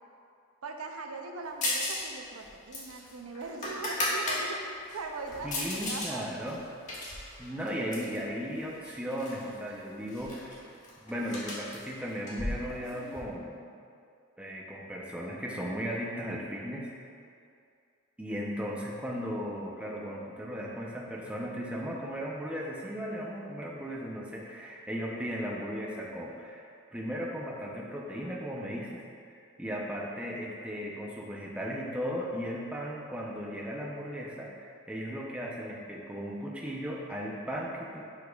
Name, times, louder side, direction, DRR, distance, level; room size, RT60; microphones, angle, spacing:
voice 1, 0.6-6.3, right 3 dB, 90° right, 4 dB, 0.5 m, -40 dB
sound 1, 1.6-2.1 2.3-4.4 4.9-6.1 6.5-8.2 8.8-9.4 9.7-9.8 10.1-13.2, left 1 dB, 35° left, 1.3 m, -35 dB
voice 2, 5.4-6.6 6.9-7.0 7.4-10.6 11.0-13.6 14.4-16.9 18.2-26.7 26.9-29.0 29.3-38.0, equal, 5° right, -3 dB, 0.6 m, -36 dB
10.0 x 5.2 x 2.4 m, 2.4 s
head